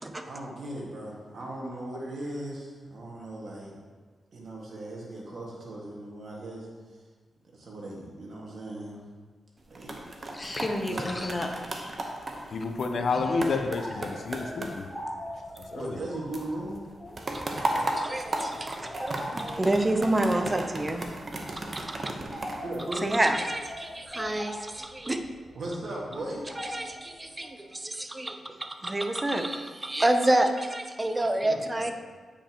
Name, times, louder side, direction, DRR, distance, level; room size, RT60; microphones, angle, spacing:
voice 1, 0.2-3.7 4.3-6.7 6.9-7.0 7.5-9.0 9.7-10.4 10.8-11.0 12.4-12.5 15.7-16.8 22.6-23.1 25.5-26.4 31.4-31.9, right 1 dB, 65° right, -3 dB, 1.7 m, -38 dB
sound 1, 9.6-16.1 16.3-23.5 24.0-24.3, right 1 dB, 40° right, 0.9 m, -35 dB
voice 2, 10.3-12.0 13.1-13.3 14.7-14.8 17.0-17.2, left 1 dB, 25° left, 3 dB, 0.8 m, -34 dB
voice 3, 12.5-14.9 15.7-16.0, left 4 dB, 65° left, 5 dB, 0.6 m, -29 dB
sound 2, 13.1-27.5, equal, 10° left, 2.0 m, -44 dB
voice 4, 17.3-21.0 21.6-22.1 22.9-25.2 26.6-31.9, right 1 dB, 20° right, 6 dB, 0.6 m, -28 dB
8.5 x 5.1 x 2.9 m, 1.4 s
cardioid pair, 70°, 0 cm